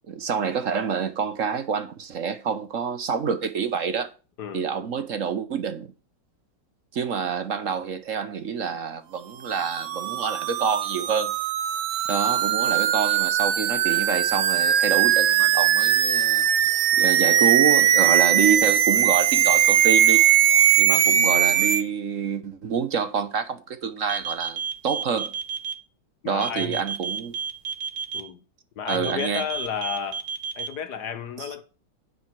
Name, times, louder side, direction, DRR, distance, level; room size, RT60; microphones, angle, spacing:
voice 1, 0.1-4.1 4.5-5.9 6.9-11.3 12.1-16.4 17.0-20.2 20.8-25.3 26.2-27.3 28.9-29.4, right 6 dB, 50° right, 1.1 m, -27 dB
voice 2, 4.4-4.9 20.8-21.0 26.2-26.8 28.1-28.4 28.8-30.2 30.6-31.6, left 7 dB, 60° left, 1.5 m, -32 dB
sound 1, 9.6-21.8, right 11 dB, 90° right, 1.6 m, -20 dB
sound 2, 24.1-25.7 26.4-28.2 28.9-30.7, right 7 dB, 75° right, 1.9 m, -30 dB
9.9 x 9.4 x 4.6 m
omnidirectional pair, 2.1 m